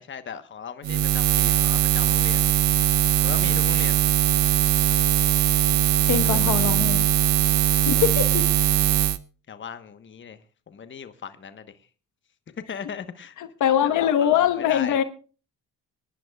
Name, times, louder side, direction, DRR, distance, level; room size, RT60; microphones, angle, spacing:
voice 1, 0.0-2.4 3.2-4.0 6.2-6.5 7.9-8.0 9.5-11.8 12.7-13.4 13.8-15.0, left 7 dB, 40° left, 1.2 m, -37 dB
Buzz, 0.8-9.2, right 12 dB, 70° right, 0.8 m, -20 dB
voice 2, 6.1-7.1 7.9-8.5 13.4-15.0, left 10 dB, 80° left, 1.3 m, -22 dB
25.5 x 11.0 x 2.3 m
cardioid pair, 90°, 30 cm